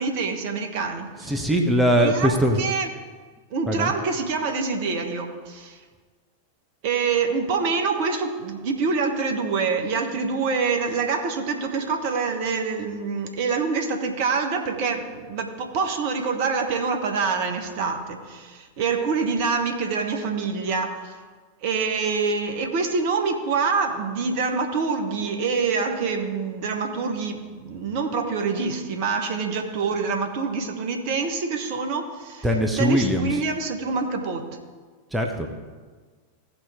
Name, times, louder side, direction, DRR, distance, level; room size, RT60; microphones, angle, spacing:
voice 1, 0.0-1.3 2.0-2.9 3.5-5.8 6.8-21.1 21.6-32.4 32.8-34.5, right 4 dB, 50° right, 4 dB, 1.4 m, -26 dB
voice 2, 1.2-2.6 3.7-3.9 32.4-33.4 35.1-35.5, equal, 5° right, 2 dB, 1.1 m, -21 dB
16.5 x 5.8 x 3.7 m, 1.4 s
figure-of-eight pair, 90°, 0 cm